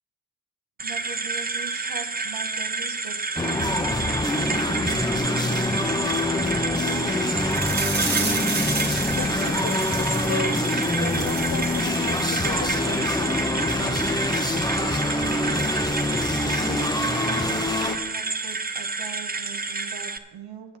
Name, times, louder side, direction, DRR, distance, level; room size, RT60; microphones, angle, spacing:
sound 1, 0.8-20.2, right 4 dB, 20° right, 0.8 m, -29 dB
voice 1, 0.8-3.9 4.3-7.4 16.4-20.8, right 7 dB, 75° right, 6 dB, 1.3 m, -41 dB
sound 2, 3.4-18.0, left 2 dB, 10° left, 1.1 m, -25 dB
sound 3, 7.5-12.5 12.8-13.0 13.4-13.5, right 4 dB, 55° right, 2.1 m, -32 dB
voice 2, 9.1-10.7 10.9-13.4 13.7-14.0, left 8 dB, 45° left, 12 dB, 0.8 m, -35 dB
9.5 x 6.7 x 7.4 m, 1.1 s
hypercardioid pair, 45°, 41 cm